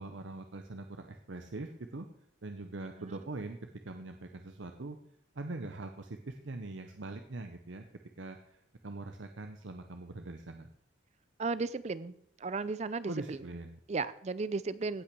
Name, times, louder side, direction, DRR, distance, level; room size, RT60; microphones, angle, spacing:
voice 1, 0.0-2.1 2.4-3.6 3.8-5.0 5.3-7.8 8.2-8.6 8.8-10.7 13.1-13.8, right 2 dB, 75° right, 6 dB, 0.8 m, -42 dB
voice 2, 11.4-12.1 12.4-13.4 13.9-15.0, right 4 dB, 35° right, 16 dB, 0.4 m, -34 dB
17.0 x 6.0 x 6.1 m, 0.71 s
head